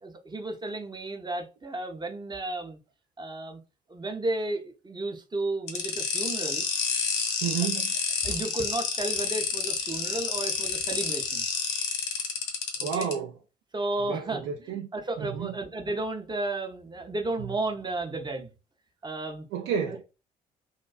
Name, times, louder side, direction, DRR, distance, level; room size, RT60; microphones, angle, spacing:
voice 1, 0.0-2.8 3.2-3.6 3.9-6.7 8.2-11.5 12.8-13.1 13.7-18.5 19.0-19.5, right 2 dB, 20° right, 0.6 m, -33 dB
sound 1, 5.7-13.1, left 6 dB, 75° left, 0.8 m, -29 dB
voice 2, 7.4-7.9 12.8-13.4 14.1-14.9 15.2-15.5 19.5-20.0, right 7 dB, 65° right, 0.4 m, -31 dB
2.5 x 2.2 x 2.3 m
hypercardioid pair, 55°, 21 cm